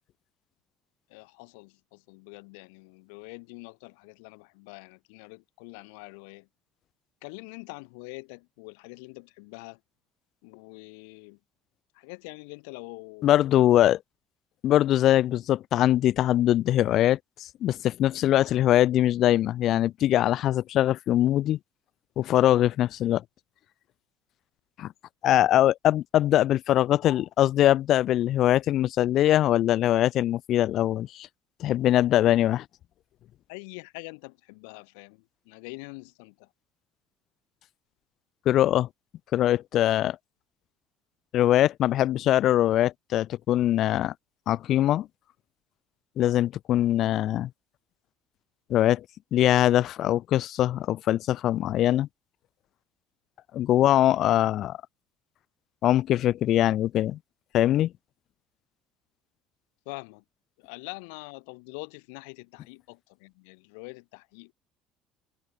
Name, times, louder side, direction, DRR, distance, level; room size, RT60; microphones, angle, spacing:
voice 1, 1.1-6.5 7.2-9.8 10.4-11.4 11.9-13.3 33.5-36.5 59.9-60.2 60.6-64.5, left 33 dB, 75° left, 1.1 m, -44 dB
voice 2, 13.2-14.0 14.6-21.6 22.2-23.2 24.8-24.9 25.2-31.3 31.6-32.6 38.5-38.9 39.3-40.2 41.3-44.1 44.5-45.1 46.2-47.5 48.7-49.0 49.3-52.1 53.5-54.8 55.8-57.2 57.5-57.9, left 13 dB, 55° left, 0.4 m, -22 dB
hypercardioid pair, 65°, 0 cm